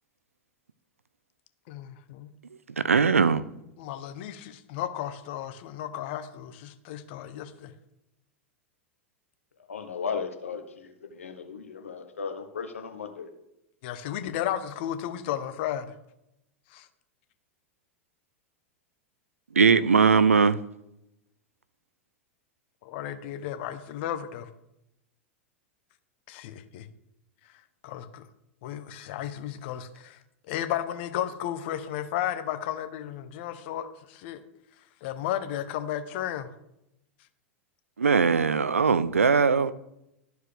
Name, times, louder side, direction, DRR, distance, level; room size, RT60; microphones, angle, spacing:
voice 1, 1.7-2.3 3.8-7.7 13.8-15.9 16.7-16.9 22.8-24.5 26.3-26.9 27.8-28.2 28.6-30.2 30.5-34.4 35.0-36.5, left 11 dB, 55° left, 10 dB, 0.8 m, -34 dB
voice 2, 2.8-3.4 19.6-20.6 38.0-39.7, right 5 dB, 90° right, 16 dB, 0.4 m, -20 dB
voice 3, 9.7-13.3, left 5 dB, 80° left, 7 dB, 1.0 m, -36 dB
13.5 x 4.7 x 3.4 m, 0.85 s
figure-of-eight pair, 95°, 7 cm